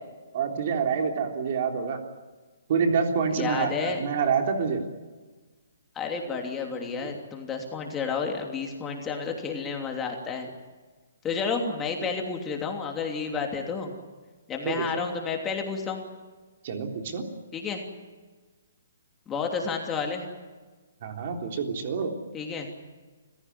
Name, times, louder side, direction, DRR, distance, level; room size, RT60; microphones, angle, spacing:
voice 1, 0.3-2.0 2.7-4.8 14.7-15.1 16.6-17.2 21.0-22.1, right 6 dB, 45° right, 4 dB, 3.6 m, -27 dB
voice 2, 3.3-4.0 5.9-10.5 11.2-14.0 14.5-16.0 17.5-17.8 19.3-20.2 22.3-22.7, left 5 dB, 15° left, 2 dB, 3.0 m, -31 dB
27.0 x 16.0 x 9.7 m, 1.3 s
hypercardioid pair, 155°, 0 cm